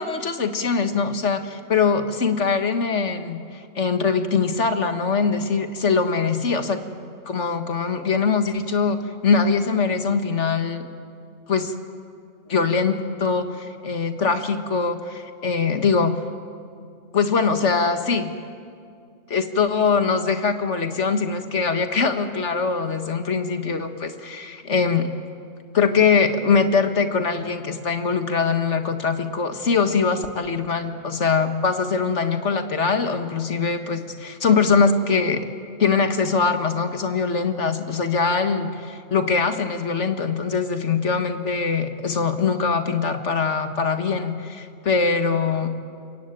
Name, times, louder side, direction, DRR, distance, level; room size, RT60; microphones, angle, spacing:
voice 1, 0.0-6.8 7.3-9.0 9.2-10.9 11.5-11.7 12.5-16.1 17.1-18.3 19.3-25.1 25.7-35.5 35.8-45.7, left 5 dB, 55° left, 7 dB, 1.9 m, -22 dB
27.5 x 23.0 x 9.1 m, 2.3 s
omnidirectional pair, 1.5 m